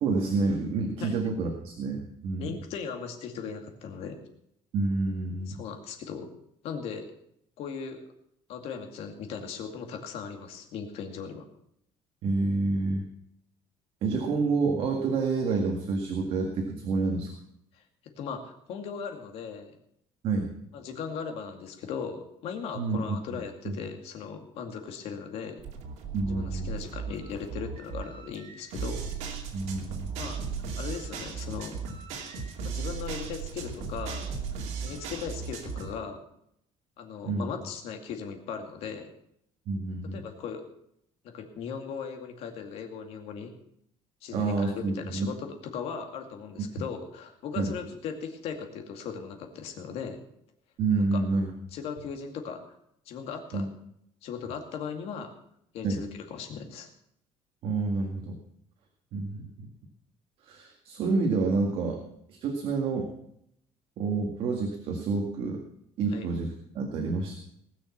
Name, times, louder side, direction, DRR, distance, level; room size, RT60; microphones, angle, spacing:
voice 1, 0.0-2.5 4.7-5.6 12.2-13.0 14.0-17.3 20.2-20.5 22.7-23.2 23.6-23.8 26.1-26.7 29.5-30.1 37.2-37.5 39.7-40.2 44.3-45.3 47.6-47.7 50.8-51.5 53.5-53.7 55.8-56.0 57.6-58.4 59.1-59.7 60.4-62.0 62.3-63.1 64.0-65.6 66.0-67.3, right 3 dB, 55° right, 2 dB, 2.0 m, -28 dB
voice 2, 2.4-4.2 5.5-6.3 6.6-7.1 7.6-8.0 8.5-11.4 17.7-19.8 20.7-25.6 26.3-29.1 30.2-30.4 30.8-31.8 32.6-34.4 34.8-36.2 37.0-39.0 40.1-40.6 41.2-43.5 44.2-50.2 51.0-51.2 51.7-52.8 53.1-53.7 54.2-55.3 55.7-56.9 66.1-66.3, left 6 dB, 60° left, 4 dB, 2.3 m, -38 dB
sound 1, 25.6-35.9, right 5 dB, 80° right, 2.5 m, -36 dB
19.5 x 6.4 x 7.3 m, 0.75 s
cardioid pair, 175°, 11 cm